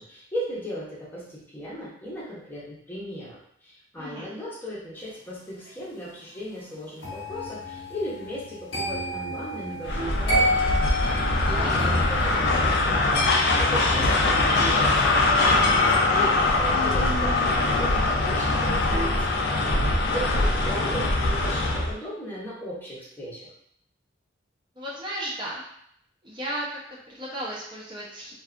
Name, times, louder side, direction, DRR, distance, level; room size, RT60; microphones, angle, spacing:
voice 1, 0.0-10.7 11.5-19.1 19.8-23.5, equal, 10° left, -7 dB, 0.7 m, -37 dB
voice 2, 4.0-4.3 11.4-11.8 20.1-20.4 24.8-25.6 26.2-28.3, right 1 dB, 25° right, -6 dB, 0.6 m, -35 dB
sound 1, 7.0-18.0 18.3-18.6, equal, 80° left, 0.8 m, -32 dB
Vehicle horn car horn honking, 9.7-11.1 11.6-11.9 12.2-12.3 12.7-12.8 13.1-13.4 14.0-15.8 16.2-16.3 16.6-16.7 17.1-17.2 17.5-17.6 17.9-19.9 21.1-21.6, right 3 dB, 65° right, 1.0 m, -40 dB
sound 2, 9.8-21.9, left 2 dB, 60° left, 0.4 m, -22 dB
2.6 x 2.3 x 2.4 m, 0.70 s
head